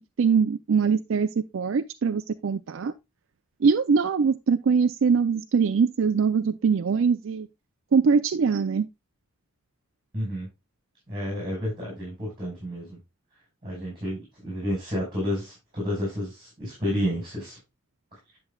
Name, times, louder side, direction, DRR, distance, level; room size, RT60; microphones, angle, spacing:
voice 1, 0.2-2.9 3.6-7.5 7.9-8.9, right 5 dB, 70° right, 0.4 m, -22 dB
voice 2, 10.1-10.5 11.1-13.0 13.6-17.6, equal, 25° right, 5.1 m, -30 dB
10.0 x 6.8 x 2.3 m
head